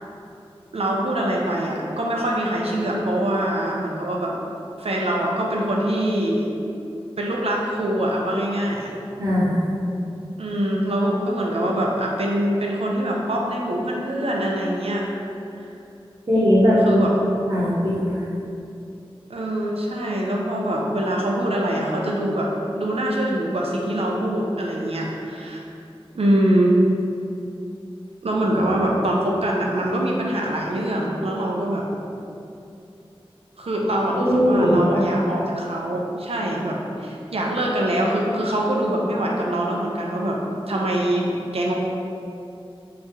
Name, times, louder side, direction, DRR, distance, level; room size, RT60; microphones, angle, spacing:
voice 1, 0.7-4.4 4.8-6.5 7.2-8.9 10.4-15.0 16.9-17.1 19.3-25.6 26.1-26.8 28.2-31.9 33.6-40.4 40.7-41.7, right 1 dB, 90° right, -2 dB, 0.5 m, -24 dB
voice 2, 9.2-9.6 16.3-18.2 34.2-35.1, equal, 45° right, -14 dB, 0.9 m, -19 dB
2.9 x 2.8 x 3.6 m, 2.7 s
wide cardioid pair, 55°, 10 cm